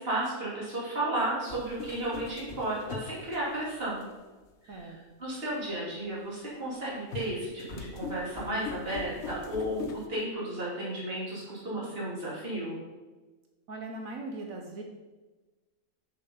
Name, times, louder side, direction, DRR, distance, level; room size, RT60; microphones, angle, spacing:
voice 1, 0.0-4.0 4.6-4.9 5.2-12.8, right 1 dB, 40° right, -7 dB, 2.8 m, -33 dB
sound 1, 1.5-4.0 4.7-4.8 7.1-10.1, left 5 dB, 55° left, 1.0 m, -41 dB
voice 2, 13.7-14.8, right 2 dB, 70° right, 2 dB, 1.2 m, -39 dB
6.9 x 5.7 x 5.5 m, 1.2 s
omnidirectional pair, 1.5 m